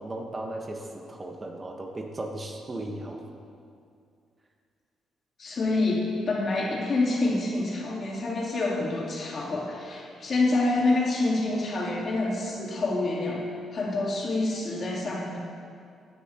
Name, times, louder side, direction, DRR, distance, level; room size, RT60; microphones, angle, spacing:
voice 1, 0.0-3.3, right 1 dB, 25° right, 2 dB, 1.1 m, -36 dB
voice 2, 5.4-13.4 13.7-15.4, left 2 dB, 50° left, -4 dB, 3.0 m, -27 dB
17.0 x 9.9 x 2.9 m, 2.3 s
cardioid pair, 90°, 0 cm